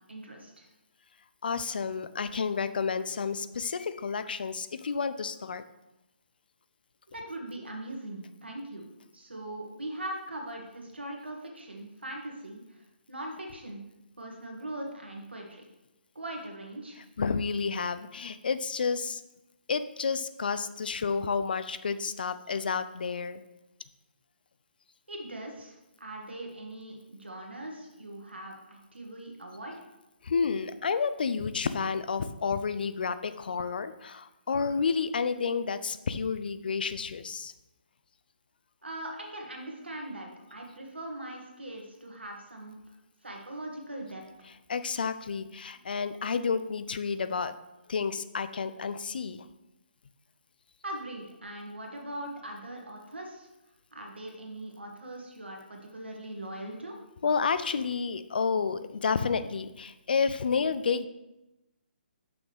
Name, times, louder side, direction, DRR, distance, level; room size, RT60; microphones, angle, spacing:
voice 1, 0.1-0.7 7.1-8.9 9.1-13.8 14.2-15.6 16.1-17.0 25.1-29.8 38.8-42.8 43.2-44.5 50.8-53.5 53.9-57.0, right 1 dB, 80° right, 1 dB, 1.7 m, -41 dB
voice 2, 1.4-5.6 17.2-19.2 19.7-23.4 30.2-37.5 44.7-47.6 47.9-49.5 57.2-61.1, left 5 dB, 60° left, 12 dB, 0.4 m, -30 dB
6.2 x 6.0 x 3.5 m, 0.95 s
figure-of-eight pair, 140°, 6 cm